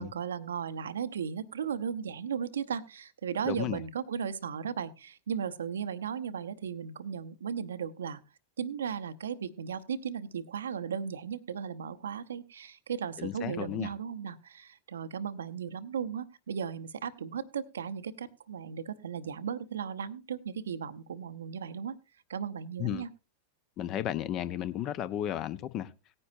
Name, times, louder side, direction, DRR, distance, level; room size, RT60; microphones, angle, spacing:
voice 1, 0.0-8.2 8.6-21.9 22.3-23.1, right 7 dB, 65° right, 0.7 m, -36 dB
voice 2, 3.5-3.8 13.2-13.9 22.8-23.0 23.8-25.9, left 11 dB, 35° left, 0.7 m, -33 dB
18.0 x 9.8 x 2.6 m
figure-of-eight pair, 90°, 0 cm